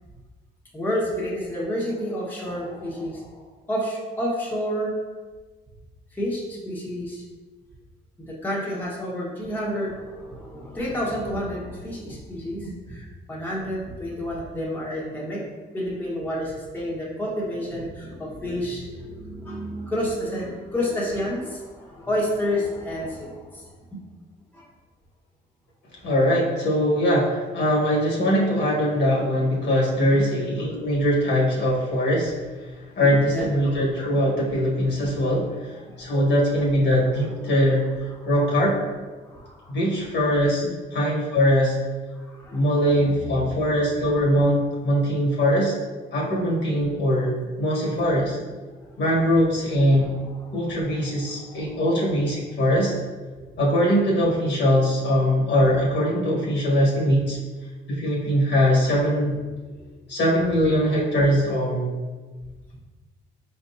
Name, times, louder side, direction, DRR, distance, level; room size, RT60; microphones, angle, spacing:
voice 1, 0.7-3.4 3.7-4.9 6.1-7.2 8.2-15.4 15.7-24.1 24.5-24.7 30.0-30.3 33.0-33.5 35.9-36.1 38.2-38.3 39.2-39.8 40.6-40.7 42.1-43.3 46.2-46.3 50.4-50.8 51.3-51.9 59.6-59.9, equal, 10° left, -6 dB, 1.3 m, -30 dB
voice 2, 26.0-32.3 32.9-38.8 39.7-40.6 40.9-41.8 42.5-45.7 46.1-48.4 49.0-50.2 50.5-52.9 53.6-57.4 57.9-59.4 60.1-61.9, equal, 65° left, -4 dB, 1.4 m, -21 dB
5.0 x 3.5 x 2.7 m, 1.3 s
cardioid pair, 90°, 20 cm